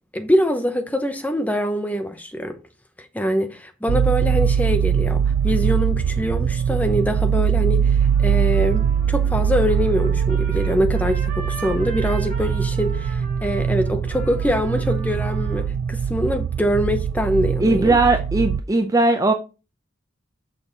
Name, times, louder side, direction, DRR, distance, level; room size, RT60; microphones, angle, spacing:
voice 1, 0.1-2.6 3.0-18.0, equal, 10° left, 0.8 m, -24 dB
sound 1, 3.9-18.6, right 7 dB, 85° right, 0.3 m, -22 dB
Trumpet, 8.0-15.7, right 3 dB, 40° right, 1.5 m, -40 dB
voice 2, 17.6-19.3, right 2 dB, 15° right, 0.5 m, -18 dB
6.2 x 5.9 x 3.9 m
head